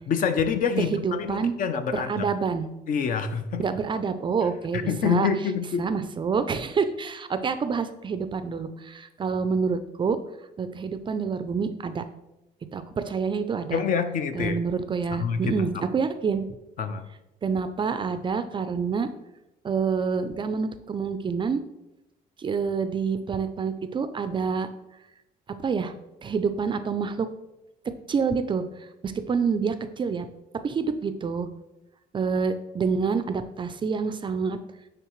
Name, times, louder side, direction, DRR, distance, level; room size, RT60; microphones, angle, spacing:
voice 1, 0.1-2.3 2.9-3.6 4.7-5.9 13.7-14.6 15.1-15.8 16.8-17.1, left 6 dB, 50° left, 9 dB, 0.6 m, -27 dB
voice 2, 0.8-1.5 1.9-2.7 3.6-5.3 5.8-10.2 10.6-12.0 12.7-13.8 14.3-16.5 17.4-19.1 19.6-21.6 22.4-24.7 25.6-25.9 26.2-27.3 28.1-28.6 29.0-30.3 30.6-31.5 32.1-34.6, right 5 dB, 30° right, 10 dB, 0.4 m, -27 dB
9.2 x 3.4 x 3.1 m, 0.92 s
cardioid pair, 110°, 17 cm